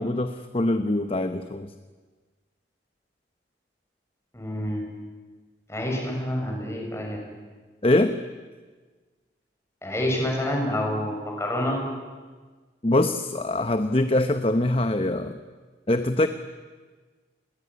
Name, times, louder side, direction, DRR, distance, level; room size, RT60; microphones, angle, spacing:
voice 1, 0.0-1.7 7.8-8.2 12.8-15.4 15.9-16.3, left 1 dB, 30° left, 10 dB, 0.9 m, -23 dB
voice 2, 4.3-4.9 5.7-7.2 9.8-11.9, left 1 dB, 15° left, 0 dB, 6.8 m, -28 dB
29.0 x 21.0 x 9.7 m, 1.4 s
head